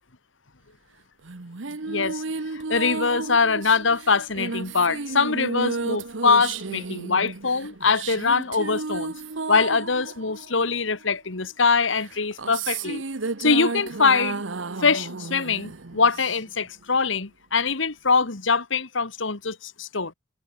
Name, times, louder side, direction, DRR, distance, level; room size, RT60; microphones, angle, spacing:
sound 1, 1.2-11.2 12.0-16.7, right 3 dB, 75° right, 1.1 m, -33 dB
voice 1, 1.9-2.2 2.5-9.1 9.5-13.0 13.4-14.4 14.8-20.1, left 4 dB, 75° left, 1.8 m, -23 dB
head